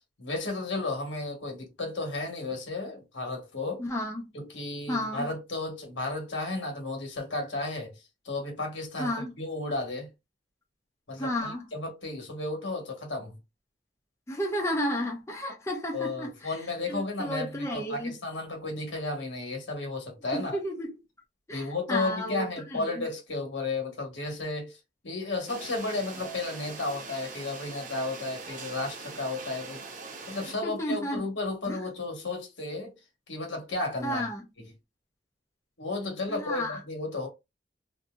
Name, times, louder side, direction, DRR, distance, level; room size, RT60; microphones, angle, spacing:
voice 1, 0.2-3.8 4.3-7.9 8.2-10.1 11.1-13.4 15.9-20.6 21.5-24.8 25.0-29.8 30.3-32.9 33.3-34.3 34.6-34.7 35.8-37.3, left 2 dB, 80° left, 1.2 m, -33 dB
voice 2, 3.8-4.3 4.9-5.3 9.0-9.3 11.2-11.7 14.3-16.5 16.9-18.1 20.3-20.9 21.5-22.8 30.6-31.2 31.7-31.8 34.0-34.4 36.3-36.8, equal, 15° left, 0.6 m, -32 dB
sound 1, 25.5-30.5, right 4 dB, 45° right, 0.7 m, -42 dB
2.7 x 2.6 x 2.3 m
head